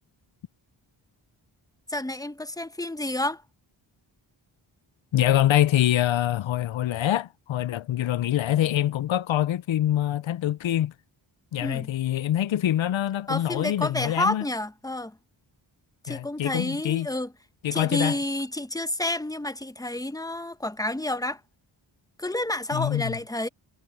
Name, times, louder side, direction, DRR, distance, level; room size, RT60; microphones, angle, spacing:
voice 1, 1.9-3.4 11.6-11.9 13.3-15.1 16.0-17.3 17.7-21.4 22.2-23.5, left 1 dB, 5° left, 1.0 m, -29 dB
voice 2, 5.1-10.9 11.5-14.5 16.1-17.1 17.6-18.2 22.7-23.2, left 12 dB, 70° left, 0.6 m, -25 dB
cardioid pair, 50°, 48 cm